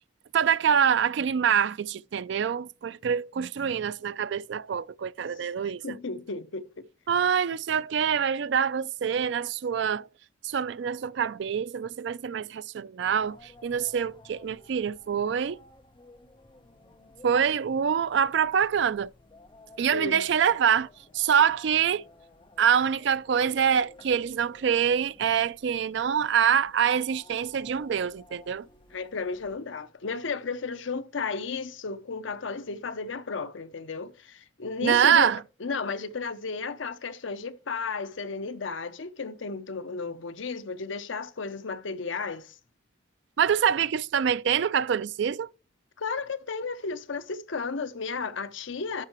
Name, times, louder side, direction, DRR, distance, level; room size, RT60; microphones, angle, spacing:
voice 1, 0.3-6.0 7.1-10.1 10.4-15.6 17.2-19.1 19.8-20.9 21.1-22.0 22.6-28.7 34.8-35.4 43.4-45.5, right 8 dB, 60° right, 0.3 m, -25 dB
voice 2, 5.8-6.7 19.9-20.3 28.9-35.3 35.6-42.6 46.0-49.1, left 4 dB, 70° left, 0.7 m, -33 dB
sound 1, 13.0-29.6, left 2 dB, 25° left, 0.7 m, -55 dB
11.5 x 5.6 x 3.0 m
head